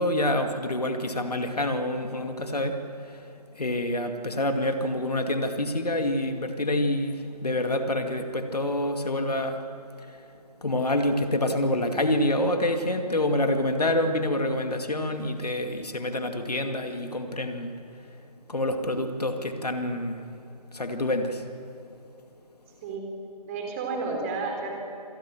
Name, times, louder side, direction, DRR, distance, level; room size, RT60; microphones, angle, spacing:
voice 1, 0.0-2.8 3.5-9.6 10.6-17.7 18.5-20.2 20.7-21.4, left 1 dB, 70° left, 6 dB, 2.4 m, -27 dB
voice 2, 23.5-24.7, right 4 dB, 20° right, 1 dB, 3.7 m, -31 dB
26.0 x 20.5 x 7.6 m, 2.5 s
figure-of-eight pair, 145°, 21 cm